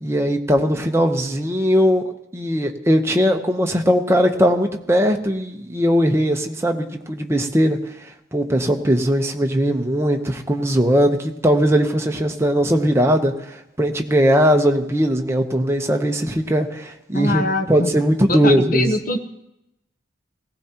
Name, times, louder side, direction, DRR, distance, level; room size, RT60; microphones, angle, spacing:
voice 1, 0.0-2.1 2.3-18.9, equal, 15° right, 3 dB, 0.8 m, -19 dB
voice 2, 17.1-17.9 18.3-19.2, left 1 dB, 45° left, 6 dB, 1.0 m, -23 dB
18.5 x 16.0 x 2.9 m, 0.86 s
head